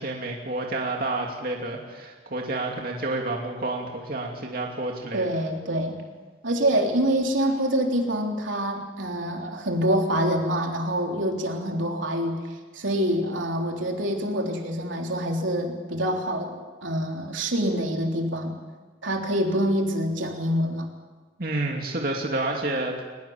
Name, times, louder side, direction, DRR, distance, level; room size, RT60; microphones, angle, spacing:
voice 1, 0.0-5.2 21.4-23.0, right 2 dB, 50° right, 0 dB, 2.7 m, -29 dB
voice 2, 5.1-6.0 6.4-12.4 12.7-18.6 19.0-20.9, equal, 85° right, 1 dB, 3.5 m, -26 dB
22.0 x 20.5 x 7.3 m, 1.4 s
head